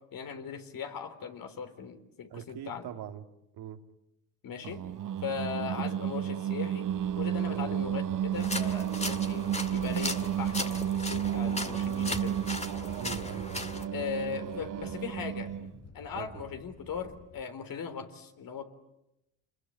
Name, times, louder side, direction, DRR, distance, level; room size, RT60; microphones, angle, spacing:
voice 1, 0.1-2.9 4.4-4.8 5.2-6.9 7.2-12.4 13.9-18.6, left 6 dB, 55° left, 7 dB, 3.9 m, -39 dB
voice 2, 2.3-3.2 3.6-3.8 7.5-7.7 12.9-13.6 16.2-16.4, right 9 dB, 65° right, 6 dB, 2.3 m, -42 dB
Singing, 4.6-15.8, right 10 dB, 50° right, 1.1 m, -32 dB
sound 1, 6.8-17.5, left 4 dB, 40° left, 1.9 m, -53 dB
sound 2, 8.3-13.9, left 2 dB, 15° left, 2.1 m, -37 dB
27.0 x 21.5 x 9.7 m, 0.88 s
supercardioid pair, 80°, 41 cm